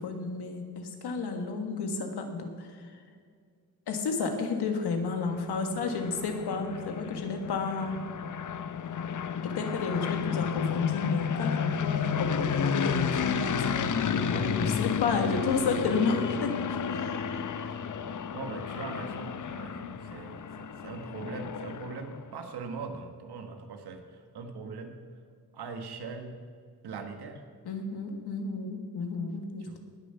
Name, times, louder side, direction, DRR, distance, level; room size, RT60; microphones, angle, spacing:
voice 1, 0.0-2.9 3.9-8.0 9.4-17.7 27.7-29.8, left 4 dB, 85° left, 5 dB, 1.7 m, -32 dB
sound 1, 5.1-22.2, left 7 dB, 50° left, 0.8 m, -32 dB
voice 2, 18.3-25.0 25.5-26.4 26.8-27.4 29.6-29.8, right 4 dB, 85° right, 5 dB, 1.6 m, -41 dB
19.0 x 6.8 x 5.7 m, 2.1 s
cardioid pair, 65°, 38 cm